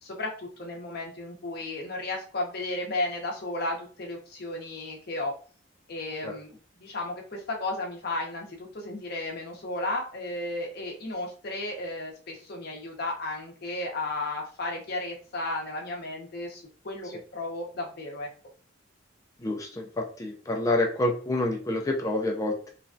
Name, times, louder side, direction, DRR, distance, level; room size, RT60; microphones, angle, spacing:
voice 1, 0.0-5.3 5.9-6.5 6.8-18.3, left 2 dB, 50° left, 1 dB, 0.7 m, -34 dB
voice 2, 19.4-22.7, left 2 dB, 15° left, 1 dB, 0.3 m, -28 dB
3.2 x 2.2 x 2.5 m, 0.41 s
head